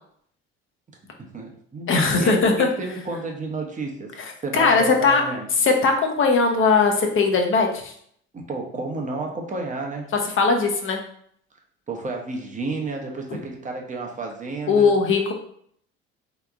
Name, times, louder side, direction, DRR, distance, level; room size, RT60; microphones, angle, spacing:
voice 1, 1.2-4.1 4.4-5.5 8.3-10.1 11.9-14.9, right 3 dB, 25° right, 1 dB, 0.9 m, -31 dB
voice 2, 1.9-2.7 4.5-5.2 5.6-7.9 10.4-11.0 14.7-15.3, left 4 dB, 45° left, 3 dB, 0.8 m, -19 dB
3.3 x 3.0 x 2.4 m, 0.65 s
supercardioid pair, 70°, 29 cm